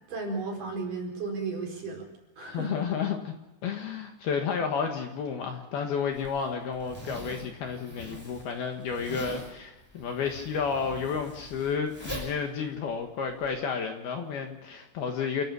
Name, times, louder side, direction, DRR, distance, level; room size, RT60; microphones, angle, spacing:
voice 1, 0.1-2.0 2.4-2.9, right 3 dB, 45° right, 1 dB, 6.0 m, -34 dB
voice 2, 2.4-3.3 3.6-15.4, left 6 dB, 65° left, 4 dB, 3.1 m, -31 dB
Zipper (clothing), 6.1-13.5, equal, 5° left, 6.0 m, -43 dB
29.0 x 14.5 x 7.0 m, 1.0 s
omnidirectional pair, 5.5 m